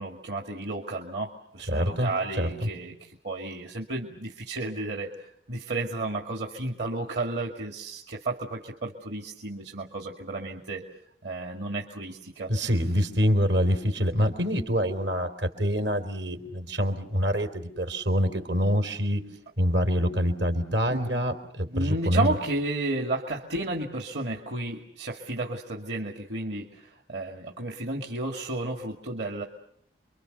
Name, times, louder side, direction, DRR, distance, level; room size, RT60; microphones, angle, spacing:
voice 1, 0.0-10.9 11.2-12.5 20.9-21.2 21.7-29.4, right 2 dB, 65° right, 1 dB, 2.4 m, -32 dB
voice 2, 1.7-2.1 2.4-2.5 12.5-19.2 19.6-22.3, equal, 80° right, 6 dB, 3.9 m, -25 dB
29.5 x 24.0 x 6.8 m, 0.69 s
head